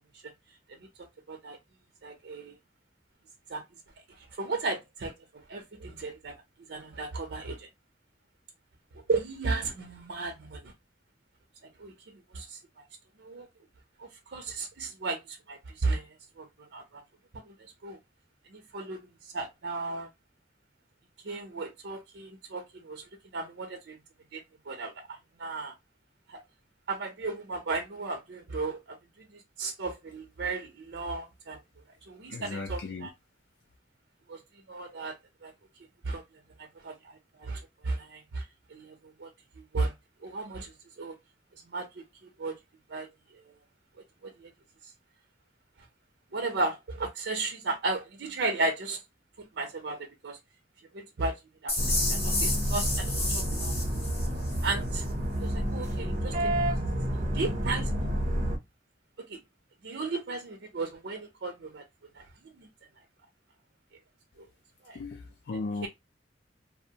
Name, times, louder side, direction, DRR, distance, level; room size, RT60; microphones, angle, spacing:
voice 1, 2.0-2.6 3.5-3.6 4.4-5.1 5.5-6.3 6.7-7.7 9.1-10.7 11.8-11.9 12.3-12.6 13.2-13.5 14.0-16.1 16.4-17.0 17.5-17.6 17.8-18.0 18.5-19.0 19.3-20.1 21.2-23.0 23.3-24.0 24.3-24.4 24.7-25.7 26.3-26.4 26.9-29.0 29.6-31.6 32.1-33.1 34.3-34.4 34.7-35.2 35.4-35.5 36.0-36.2 36.6-38.4 38.7-39.3 39.7-39.9 40.2-41.2 41.7-42.5 42.9-43.1 43.5-43.6 44.2-44.5 46.3-49.0 49.6-50.0 50.2-50.4 50.9-51.7 52.1-53.7 54.6-55.0 55.4-56.3 57.3-57.9 59.3-59.4 59.8-61.8 62.1-62.2 62.6-62.7 64.4-64.5 64.8-65.0, right 3 dB, 80° right, 0.5 m, -34 dB
voice 2, 32.3-33.1 64.9-65.9, left 3 dB, 70° left, 0.4 m, -36 dB
sound 1, 51.7-54.7, left 2 dB, 35° left, 1.0 m, -31 dB
sound 2, 51.8-58.6, equal, 40° right, 0.7 m, -29 dB
2.6 x 2.0 x 2.7 m
head